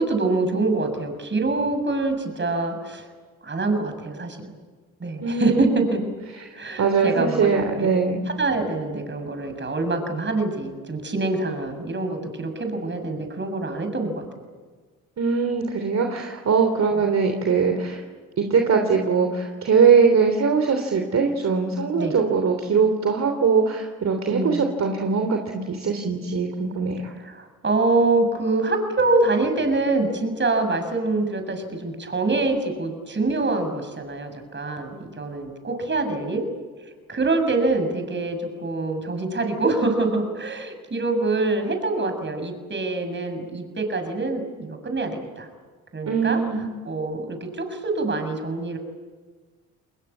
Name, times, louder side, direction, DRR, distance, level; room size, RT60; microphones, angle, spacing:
voice 1, 0.0-3.1 3.4-4.4 5.0-6.0 6.5-7.5 7.8-7.9 8.3-14.2 22.0-22.2 24.3-24.7 27.1-36.4 37.1-45.5 45.9-46.4 46.8-48.8, right 2 dB, 35° right, 6 dB, 7.2 m, -25 dB
voice 2, 5.2-5.8 6.8-8.2 15.2-18.0 18.4-27.1 46.1-46.6, right 5 dB, 50° right, 5 dB, 3.4 m, -21 dB
30.0 x 21.5 x 8.7 m, 1.4 s
supercardioid pair, 65°, 34 cm